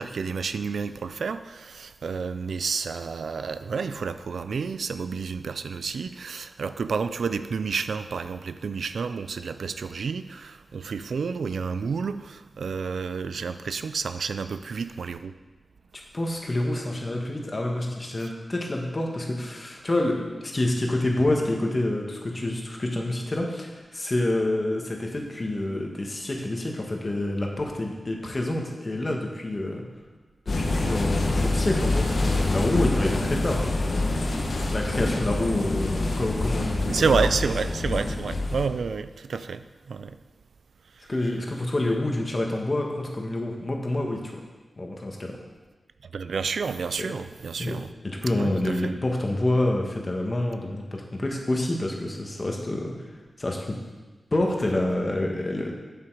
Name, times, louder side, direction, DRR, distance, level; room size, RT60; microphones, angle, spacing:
voice 1, 0.0-15.3 33.3-33.4 36.9-40.2 46.1-47.9 48.4-48.9, right 5 dB, 85° right, 11 dB, 0.4 m, -30 dB
voice 2, 16.1-29.8 30.6-33.8 34.7-37.2 41.1-44.4 44.8-45.4 47.0-47.1 47.6-47.8 48.0-52.9 53.4-53.8 54.3-55.7, left 1 dB, 30° left, 1 dB, 1.4 m, -27 dB
sound 1, 30.5-38.7, left 2 dB, 60° left, 1.2 m, -26 dB
9.0 x 7.5 x 4.7 m, 1.3 s
wide cardioid pair, 135°, 0 cm